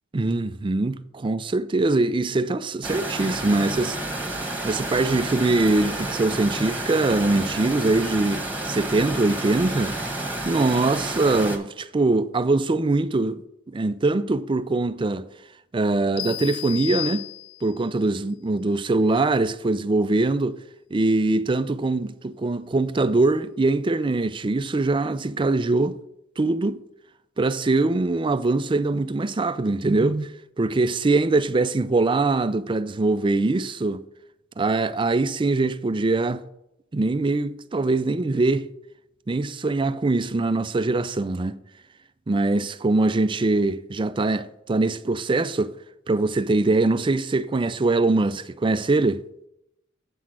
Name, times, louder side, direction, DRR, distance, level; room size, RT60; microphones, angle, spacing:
voice 1, 0.1-4.0 4.6-10.0 10.5-13.4 13.7-15.3 15.7-17.3 17.6-20.6 20.9-26.0 26.4-26.8 27.4-34.0 34.6-36.4 36.9-38.7 39.3-41.5 42.3-45.7 46.1-49.2, right 2 dB, 25° right, 0.4 m, -22 dB
sound 1, 2.8-11.6, right 1 dB, 10° right, 1.3 m, -30 dB
sound 2, 16.2-17.9, left 18 dB, 80° left, 0.8 m, -33 dB
8.4 x 5.9 x 6.3 m
head